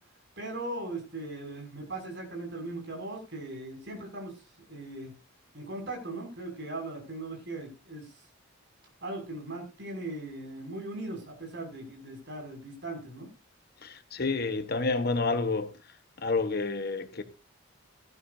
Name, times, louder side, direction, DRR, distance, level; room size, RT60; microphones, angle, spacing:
voice 1, 0.4-5.1 5.5-8.1 9.0-13.3, right 2 dB, 50° right, 5.9 m, -39 dB
voice 2, 13.8-15.7 16.2-17.2, left 3 dB, 45° left, 1.1 m, -29 dB
16.5 x 13.0 x 2.6 m
head